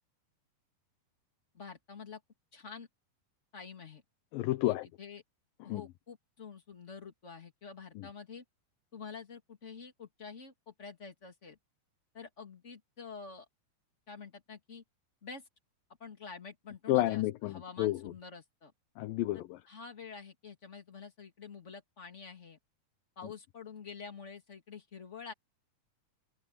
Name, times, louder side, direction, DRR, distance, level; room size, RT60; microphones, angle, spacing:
voice 1, 1.5-2.2 2.5-2.9 3.5-4.0 4.6-5.2 5.6-8.4 8.9-11.6 12.1-13.5 14.1-14.8 15.2-15.4 16.0-18.7 19.3-22.6 23.2-25.3, left 5 dB, 25° left, 1.9 m, -48 dB
voice 2, 4.3-4.9 5.7-5.8 8.0-8.1 16.9-18.0 19.0-19.6, left 16 dB, 75° left, 2.1 m, -30 dB
open air
omnidirectional pair, 4.7 m